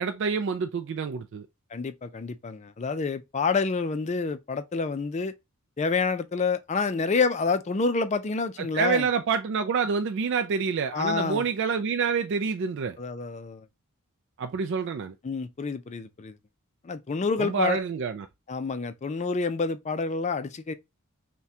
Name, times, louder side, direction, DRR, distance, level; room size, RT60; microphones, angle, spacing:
voice 1, 0.0-1.5 8.7-13.0 14.4-15.1 17.4-18.3, right 5 dB, 55° right, 0.3 m, -27 dB
voice 2, 1.7-5.3 5.8-9.1 10.9-11.5 13.0-13.7 15.2-16.4 16.8-17.8 18.5-20.7, left 4 dB, 30° left, 0.4 m, -28 dB
5.7 x 2.2 x 2.7 m
head